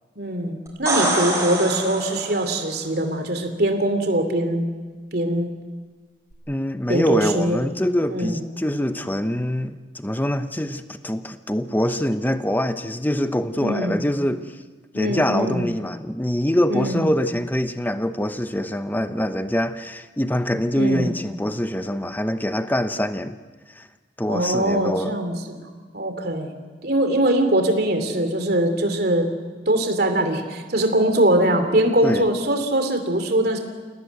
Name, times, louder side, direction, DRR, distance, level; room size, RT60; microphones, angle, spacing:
voice 1, 0.2-4.7 5.1-5.5 6.9-7.6 8.1-8.4 13.6-14.0 14.9-15.7 16.7-17.1 20.7-21.1 24.3-26.5 26.8-29.3 29.7-33.6, right 1 dB, 55° right, 6 dB, 3.0 m, -22 dB
sound 1, 0.7-2.6 6.3-6.4, right 2 dB, 15° right, 6.0 m, -25 dB
voice 2, 6.5-14.6 14.9-23.4 23.7-23.9 24.2-25.1 32.0-32.3, equal, 10° left, 9 dB, 0.9 m, -24 dB
27.5 x 18.0 x 9.4 m, 1.4 s
head